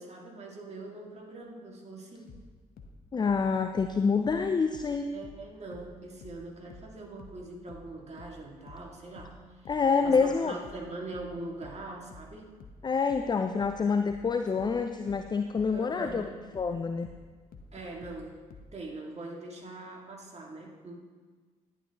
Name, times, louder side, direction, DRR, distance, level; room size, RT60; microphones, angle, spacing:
voice 1, 0.0-2.4 5.1-9.7 10.0-12.6 15.7-16.4 17.7-18.4 18.7-20.9, right 2 dB, 35° right, -1 dB, 2.2 m, -42 dB
sound 1, 2.3-5.5 5.7-18.8, left 3 dB, 50° left, 1.0 m, -50 dB
voice 2, 3.1-5.1 9.7-10.5 12.8-16.3 16.6-17.1, left 5 dB, 25° left, 8 dB, 0.5 m, -27 dB
11.0 x 9.0 x 2.9 m, 1.4 s
figure-of-eight pair, 40°, 19 cm